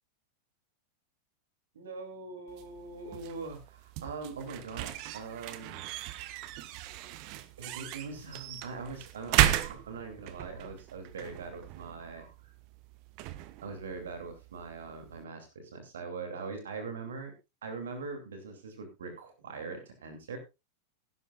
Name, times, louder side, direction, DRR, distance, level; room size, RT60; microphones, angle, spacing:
voice 1, 1.7-5.8 6.2-6.3 7.6-12.3 13.6-17.3 17.6-20.4, right 4 dB, 65° right, 5 dB, 2.7 m, -42 dB
sound 1, 2.5-15.2, right 14 dB, 45° right, 1.0 m, -35 dB
18.0 x 11.0 x 2.4 m, 0.25 s
figure-of-eight pair, 90°, 0 cm